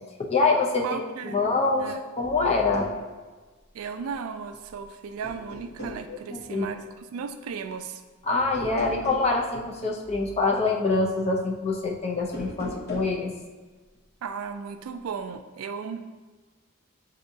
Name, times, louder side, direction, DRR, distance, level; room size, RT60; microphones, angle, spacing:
voice 1, 0.3-1.0 1.3-2.9 6.1-6.7 8.3-13.3, left 3 dB, 30° left, -1 dB, 0.5 m, -25 dB
voice 2, 0.8-1.5 1.8-2.0 3.7-8.0 14.2-16.1, right 6 dB, 80° right, 9 dB, 0.3 m, -35 dB
sound 1, 2.7-3.0 4.5-4.9 5.2-6.1 8.5-9.3 12.2-13.2, equal, 50° left, 1.0 m, -38 dB
7.0 x 2.7 x 2.7 m, 1.3 s
head